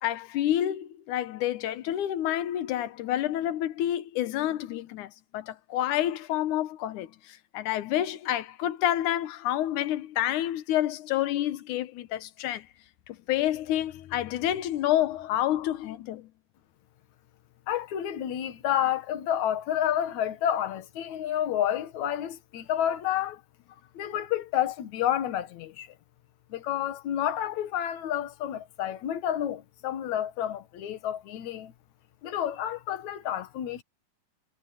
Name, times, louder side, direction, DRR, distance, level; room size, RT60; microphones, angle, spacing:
voice 1, 0.0-12.7 13.1-16.3, left 12 dB, 90° left, 2.5 m, -29 dB
voice 2, 17.7-23.4 23.9-25.9 26.5-31.7 32.2-33.8, left 11 dB, 70° left, 2.8 m, -30 dB
omnidirectional pair, 3.4 m